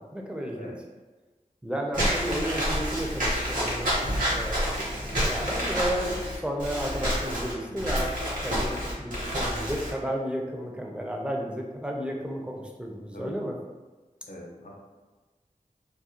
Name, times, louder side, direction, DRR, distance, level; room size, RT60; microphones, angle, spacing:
voice 1, 0.1-0.7 1.6-8.1 8.4-13.5, equal, 5° right, 0 dB, 0.4 m, -33 dB
Walk footsteps / Squeak, 1.9-9.9, equal, 65° right, 0.9 m, -28 dB
voice 2, 7.6-7.9 13.1-13.3 14.3-14.7, left 1 dB, 75° left, -4 dB, 0.7 m, -43 dB
2.4 x 2.1 x 2.8 m, 1.3 s
wide cardioid pair, 55°, 14 cm